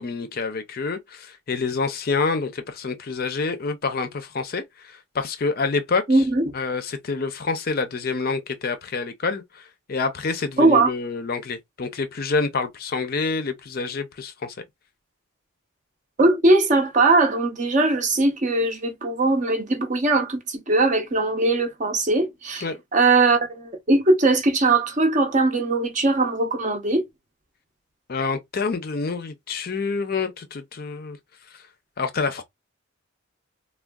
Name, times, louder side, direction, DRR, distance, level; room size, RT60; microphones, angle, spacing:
voice 1, 0.0-6.2 6.5-14.6 22.6-22.8 28.1-31.2 31.5-31.6 32.0-32.4, left 4 dB, 45° left, 0.5 m, -27 dB
voice 2, 6.1-6.5 10.6-10.9 16.2-22.6 22.9-27.0, right 2 dB, 35° right, 0.6 m, -20 dB
3.5 x 2.2 x 2.2 m
head